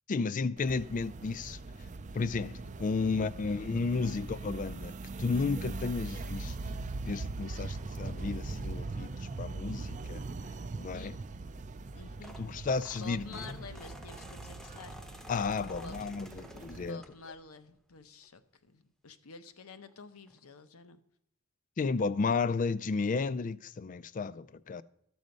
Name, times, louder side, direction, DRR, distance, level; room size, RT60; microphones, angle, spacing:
voice 1, 0.1-1.6 2.1-6.6 7.0-10.2 10.8-11.2 12.4-13.6 15.3-17.0 21.8-24.8, left 4 dB, 35° left, 0.3 m, -33 dB
sound 1, 0.6-16.9, right 3 dB, 35° right, 0.4 m, -41 dB
voice 2, 11.9-12.4 13.0-15.3 15.7-16.0 16.7-21.0, left 4 dB, 80° left, 0.8 m, -49 dB
sound 2, 11.9-17.5 18.0-18.3 19.5-19.6 19.8-19.9 20.3-20.4, equal, ahead, 0.7 m, -52 dB
13.5 x 6.3 x 5.3 m
head